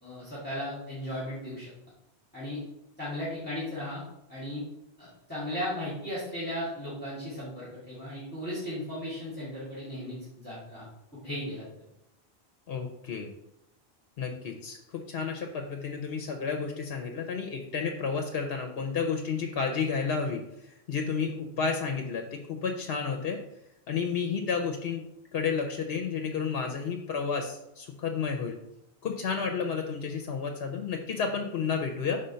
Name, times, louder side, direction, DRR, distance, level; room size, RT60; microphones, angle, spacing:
voice 1, 0.0-1.7 2.3-2.6 3.0-4.0 4.3-4.6 5.0-10.9 11.2-11.6, left 1 dB, 10° left, -10 dB, 2.0 m, -36 dB
voice 2, 12.7-13.3 14.2-14.8 15.1-20.4 20.9-23.4 23.9-25.0 25.3-28.6 29.0-32.2, left 5 dB, 65° left, 4 dB, 0.8 m, -31 dB
5.2 x 3.7 x 5.6 m, 0.85 s
omnidirectional pair, 1.1 m